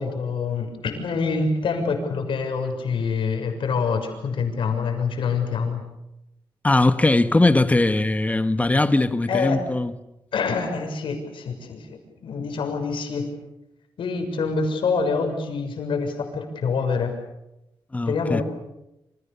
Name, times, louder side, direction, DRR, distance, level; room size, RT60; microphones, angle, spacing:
voice 1, 0.0-5.8 9.3-9.6 10.3-13.3 14.0-17.1 18.1-18.4, left 5 dB, 80° left, 6.5 m, -26 dB
voice 2, 6.6-9.9 17.9-18.4, left 2 dB, 15° left, 1.3 m, -20 dB
29.0 x 27.0 x 7.0 m
wide cardioid pair, 120°, 9 cm